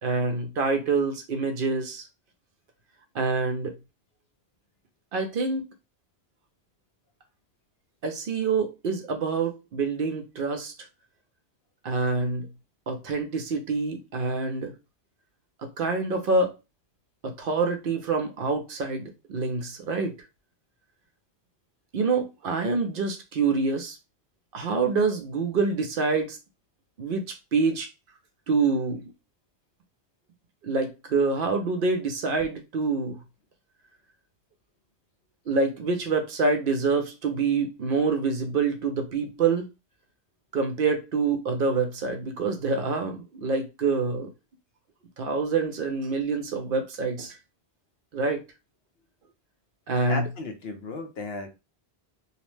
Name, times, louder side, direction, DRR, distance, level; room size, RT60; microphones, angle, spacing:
voice 1, 0.0-2.0 3.1-3.7 5.1-5.7 8.0-10.7 11.8-12.5 12.9-14.7 15.8-16.5 17.2-20.1 21.9-24.0 24.5-26.4 27.0-27.2 27.5-27.9 28.5-29.0 30.6-33.2 35.5-39.7 40.5-44.3 45.2-47.4 48.1-48.4 49.9-50.3, right 4 dB, 60° right, 0.7 m, -26 dB
voice 2, 50.1-51.5, left 3 dB, 70° left, 0.8 m, -34 dB
2.8 x 2.0 x 3.1 m
omnidirectional pair, 1.1 m